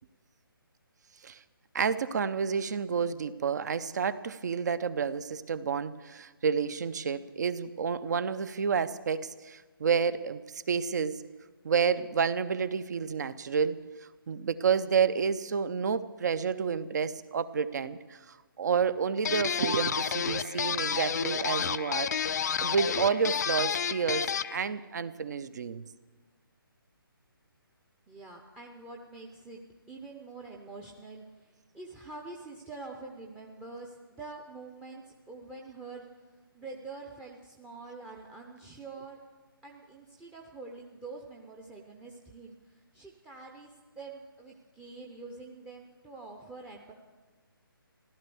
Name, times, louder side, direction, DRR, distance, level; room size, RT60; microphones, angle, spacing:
voice 1, 1.7-11.2 11.6-13.8 14.3-22.1 22.6-25.8, right 6 dB, 50° right, 15 dB, 0.7 m, -30 dB
sound 1, 19.2-24.6, left 7 dB, 45° left, 0.5 m, -30 dB
voice 2, 28.1-29.6 29.9-36.1 36.5-39.2 39.6-43.7 44.0-46.9, right 3 dB, 5° right, -1 dB, 0.7 m, -46 dB
15.5 x 12.0 x 7.0 m, 1.3 s
figure-of-eight pair, 150°, 12 cm